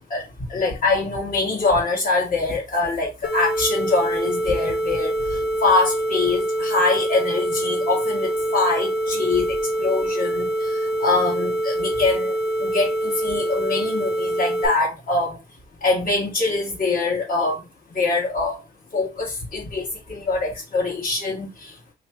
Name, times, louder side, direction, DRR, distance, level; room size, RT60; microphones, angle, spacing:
voice 1, 0.1-12.3 12.6-15.4 15.8-17.6 17.9-18.6 18.9-21.7, left 3 dB, 40° left, 1.8 m, -24 dB
sound 1, 3.2-14.7, right 1 dB, 65° left, 1.0 m, -25 dB
3.5 x 3.3 x 2.9 m
cardioid pair, 90°, 20 cm